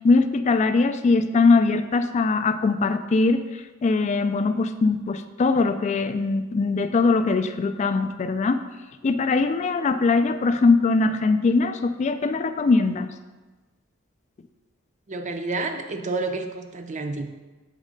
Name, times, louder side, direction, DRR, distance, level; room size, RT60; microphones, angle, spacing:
voice 1, 0.0-8.6 9.0-13.1, left 3 dB, 35° left, 10 dB, 0.3 m, -21 dB
voice 2, 15.1-17.3, right 3 dB, 35° right, 6 dB, 0.5 m, -29 dB
7.3 x 3.2 x 5.2 m, 1.2 s
head